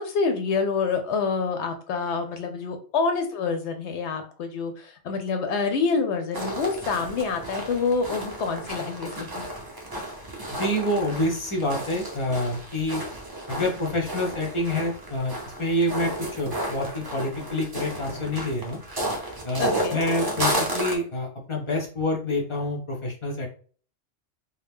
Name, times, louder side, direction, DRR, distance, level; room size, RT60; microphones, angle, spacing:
voice 1, 0.0-9.5 19.6-20.0, left 4 dB, 70° left, 6 dB, 0.8 m, -27 dB
sound 1, 6.3-20.9, right 1 dB, 25° right, 0.5 m, -32 dB
voice 2, 10.5-13.0 13.5-18.8 19.4-23.5, left 1 dB, 40° left, 1 dB, 0.5 m, -27 dB
2.8 x 2.0 x 3.4 m, 0.42 s
omnidirectional pair, 1.3 m